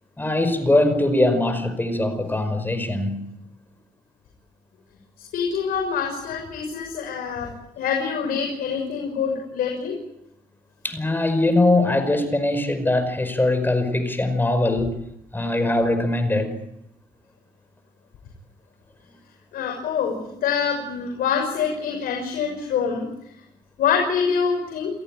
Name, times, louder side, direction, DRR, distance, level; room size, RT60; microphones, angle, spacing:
voice 1, 0.2-3.4 10.8-15.0 15.3-16.6, left 2 dB, 15° left, 5.4 m, -21 dB
voice 2, 5.3-7.5 7.8-9.9 19.5-23.0 23.8-24.9, left 6 dB, 85° left, 6.4 m, -25 dB
29.0 x 17.0 x 9.0 m
cardioid pair, 105°, 15 cm